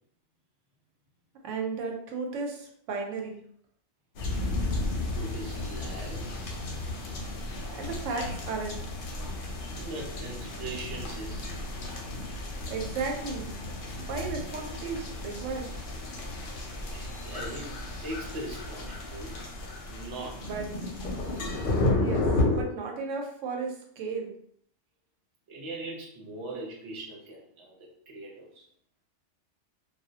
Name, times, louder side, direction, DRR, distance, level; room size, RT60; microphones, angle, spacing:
voice 1, 1.4-3.4 7.7-8.8 12.7-13.5 14.0-15.7 20.4-20.7 21.9-22.3 22.5-24.3, right 4 dB, 85° right, 1 dB, 0.9 m, -34 dB
sound 1, 4.2-22.6, left 2 dB, 60° left, 0.6 m, -33 dB
voice 2, 5.1-6.3 9.8-11.5 16.9-19.4 19.9-20.5 25.5-28.7, right 2 dB, 35° right, -2 dB, 0.5 m, -40 dB
2.2 x 2.0 x 2.7 m, 0.65 s
omnidirectional pair, 1.3 m